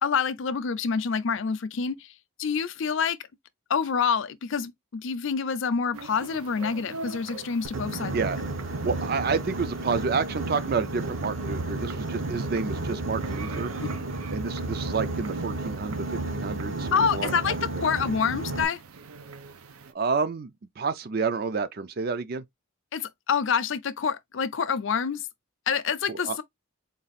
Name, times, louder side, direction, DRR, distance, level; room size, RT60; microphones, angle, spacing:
voice 1, 0.0-2.0 2.4-3.2 3.7-8.1 16.9-17.6 17.8-18.8 22.9-25.2 25.7-26.3, left 6 dB, 60° left, 0.4 m, -27 dB
sound 1, 5.9-19.9, right 4 dB, 90° right, 0.6 m, -44 dB
Boat Water vehicle, 7.6-18.6, right 2 dB, 65° right, 0.9 m, -32 dB
voice 2, 8.8-13.7 14.3-17.8 19.9-22.4 26.1-26.4, right 5 dB, 45° right, 0.4 m, -29 dB
3.9 x 2.4 x 4.0 m
head